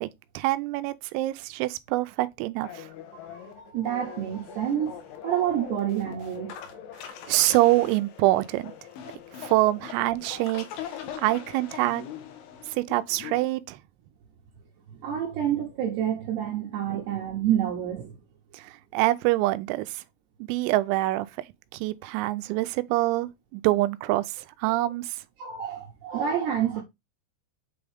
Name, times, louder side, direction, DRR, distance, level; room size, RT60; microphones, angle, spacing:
voice 1, 0.4-2.9 7.3-8.7 9.4-10.7 11.2-12.0 12.7-13.8 18.5-20.0 20.4-21.3 21.7-24.3 24.6-25.2, right 17 dB, 90° right, 3.3 m, -25 dB
sound 1, 2.6-13.4, left 9 dB, 70° left, 3.5 m, -42 dB
voice 2, 3.3-6.6 14.9-18.2 25.4-26.8, right 10 dB, 75° right, 2.6 m, -28 dB
8.5 x 3.6 x 3.4 m
omnidirectional pair, 6.0 m